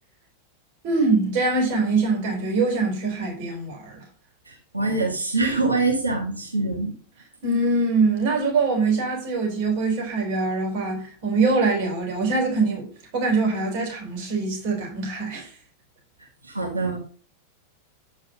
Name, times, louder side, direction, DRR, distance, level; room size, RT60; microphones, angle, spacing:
voice 1, 0.8-4.0 7.4-12.9 13.1-15.5, right 3 dB, 45° right, 3.7 m, -23 dB
voice 2, 4.5-6.9 16.4-17.0, right 3 dB, 80° right, 1.8 m, -24 dB
9.1 x 4.7 x 5.1 m
figure-of-eight pair, 90°, 0 cm